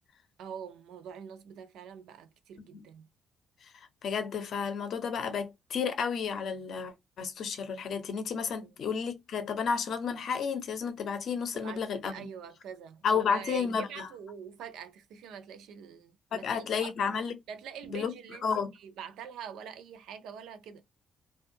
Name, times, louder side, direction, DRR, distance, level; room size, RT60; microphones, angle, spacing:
voice 1, 0.4-3.1 8.6-8.7 11.5-17.2 17.5-18.5 18.7-20.8, right 7 dB, 90° right, 0.4 m, -45 dB
voice 2, 3.6-12.3 13.0-14.1 16.3-17.3 17.9-18.1 18.4-18.7, left 6 dB, 50° left, 0.6 m, -32 dB
2.6 x 2.3 x 2.6 m
cardioid pair, 165°, 0 cm